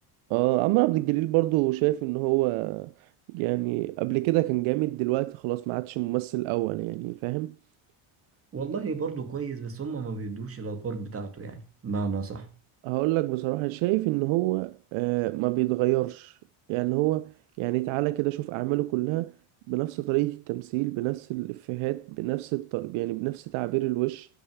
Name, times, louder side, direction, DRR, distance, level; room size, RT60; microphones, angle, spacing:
voice 1, 0.3-2.9 3.3-7.5 12.8-16.3 16.7-17.3 17.6-19.3 19.7-24.3, right 20 dB, 70° right, 0.6 m, -27 dB
voice 2, 8.5-12.5, right 4 dB, 25° right, 2.3 m, -33 dB
10.5 x 6.8 x 7.8 m
cardioid pair, 135°, 50 cm